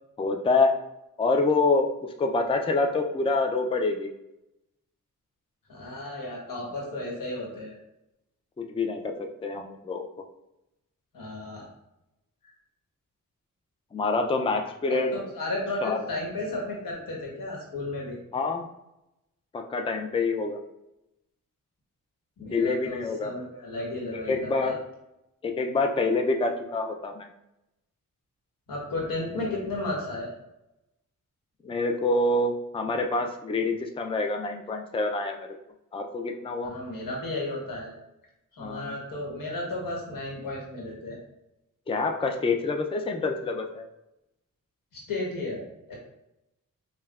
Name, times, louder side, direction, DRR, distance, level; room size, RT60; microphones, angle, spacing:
voice 1, 0.2-0.7 1.2-4.1 8.6-10.1 13.9-15.1 15.8-16.0 18.3-18.7 19.5-20.6 22.4-23.3 24.1-24.8 25.4-27.3 31.6-35.5 35.9-36.7 38.6-38.9 41.9-43.9, left 3 dB, 15° left, 3 dB, 0.4 m, -26 dB
voice 2, 5.7-7.7 11.1-11.7 14.9-18.2 22.4-24.7 28.7-30.3 36.6-38.0 38.5-41.2 44.9-45.9, left 2 dB, 90° left, -2 dB, 1.1 m, -34 dB
5.3 x 2.2 x 2.3 m, 0.89 s
cardioid pair, 70°, 33 cm